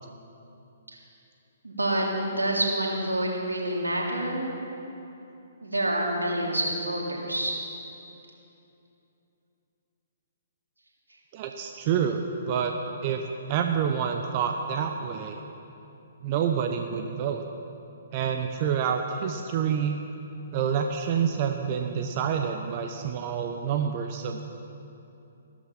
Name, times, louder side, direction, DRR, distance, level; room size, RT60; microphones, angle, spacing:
voice 1, 1.6-4.5 5.6-7.5, right 1 dB, 90° right, -2 dB, 3.2 m, -27 dB
voice 2, 11.3-12.8 13.0-15.4 16.2-17.4 18.1-20.0 20.5-24.4, right 7 dB, 40° right, 5 dB, 0.9 m, -28 dB
15.0 x 13.0 x 5.9 m, 2.8 s
figure-of-eight pair, 125°, 0 cm